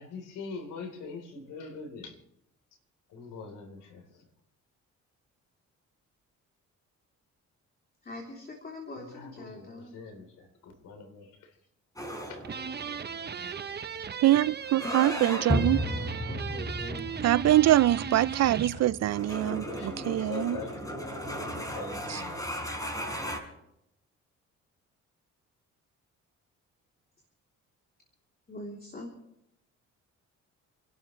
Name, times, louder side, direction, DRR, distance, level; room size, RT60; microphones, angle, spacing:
voice 1, 0.0-2.2 3.1-4.0 9.0-11.5 12.3-12.4 18.7-22.7, left 4 dB, 90° left, 3.8 m, -43 dB
voice 2, 8.0-9.9 14.8-17.1 28.5-29.1, left 1 dB, 30° left, 3.4 m, -43 dB
sound 1, 12.0-23.4, equal, 10° left, 4.1 m, -35 dB
sound 2, 12.4-18.8, right 7 dB, 35° right, 0.9 m, -37 dB
voice 3, 14.2-15.8 17.2-20.6 22.1-22.2, right 14 dB, 60° right, 0.5 m, -24 dB
28.5 x 12.0 x 3.3 m
cardioid pair, 90°, 30 cm